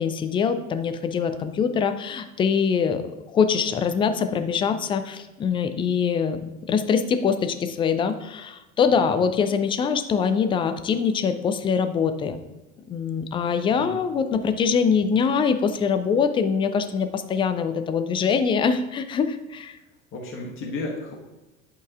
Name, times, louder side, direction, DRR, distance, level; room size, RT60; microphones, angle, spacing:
voice 1, 0.0-12.4 12.9-19.8, left 6 dB, 15° left, 9 dB, 0.4 m, -23 dB
voice 2, 8.9-9.2 13.7-14.0 20.1-21.1, left 2 dB, 30° left, -1 dB, 1.5 m, -33 dB
11.0 x 5.3 x 2.5 m, 1.1 s
figure-of-eight pair, 70°, 41 cm